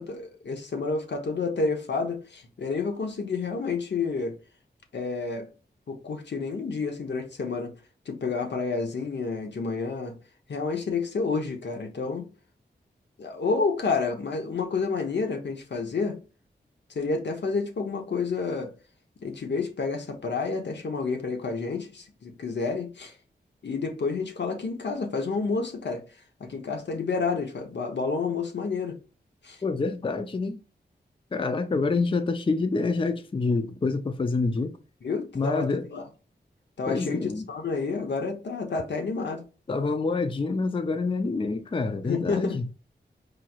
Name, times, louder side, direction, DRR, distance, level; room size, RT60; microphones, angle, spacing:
voice 1, 0.0-4.4 4.9-5.5 5.9-7.7 8.1-10.1 10.5-12.3 13.2-16.2 16.9-18.7 19.2-23.1 23.6-26.0 26.4-29.0 29.4-29.6 35.0-36.0 36.8-39.4 42.0-42.6, left 4 dB, 75° left, 1.0 m, -29 dB
voice 2, 29.6-30.6 31.3-34.8 35.3-35.9 36.9-37.4 39.7-42.6, left 3 dB, 30° left, 0.4 m, -27 dB
4.8 x 3.0 x 2.4 m
wide cardioid pair, 90°, 18 cm